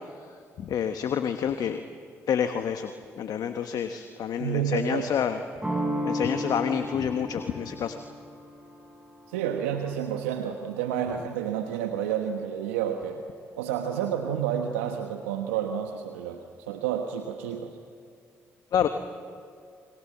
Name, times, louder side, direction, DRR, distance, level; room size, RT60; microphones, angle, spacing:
voice 1, 0.6-1.8 2.3-5.4 6.0-8.0 18.7-18.9, left 8 dB, 65° left, 8 dB, 1.2 m, -28 dB
voice 2, 4.4-5.1 9.3-13.2 13.6-16.4 16.7-17.8, right 9 dB, 85° right, 5 dB, 1.2 m, -30 dB
sound 1, 5.6-11.2, equal, 15° right, 6.8 m, -35 dB
29.5 x 23.0 x 7.5 m, 2.3 s
hypercardioid pair, 45°, 7 cm